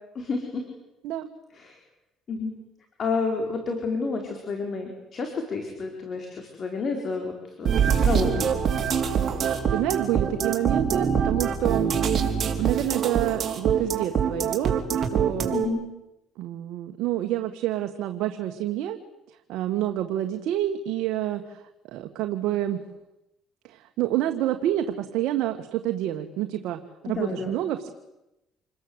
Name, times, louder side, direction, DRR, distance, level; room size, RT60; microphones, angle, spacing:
voice 1, 0.1-0.6 1.6-1.8 2.3-2.5 3.0-7.3 7.6-8.6 15.5-15.8 27.0-27.6, left 4 dB, 50° left, 3 dB, 4.7 m, -30 dB
sound 1, 7.7-15.7, right 7 dB, 45° right, 4.2 m, -24 dB
voice 2, 9.4-11.9 12.6-15.6 16.4-19.0 19.3-22.8 23.6-27.9, right 13 dB, 80° right, 6 dB, 1.7 m, -28 dB
28.0 x 21.0 x 8.2 m, 0.92 s
cardioid pair, 95°, 0 cm